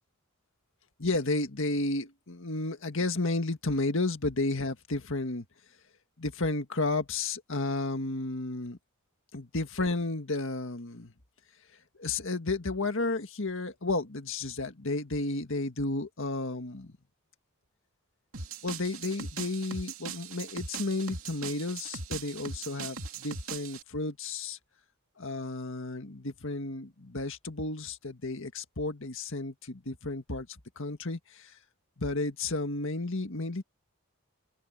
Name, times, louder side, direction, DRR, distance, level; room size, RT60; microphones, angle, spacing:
voice 1, 1.0-5.5 6.2-8.8 9.3-11.1 12.0-17.0 18.6-24.6 25.2-31.5 32.0-33.6, left 2 dB, 60° left, 1.9 m, -32 dB
sound 1, 18.3-23.8, right 5 dB, 65° right, 2.9 m, -40 dB
open air
head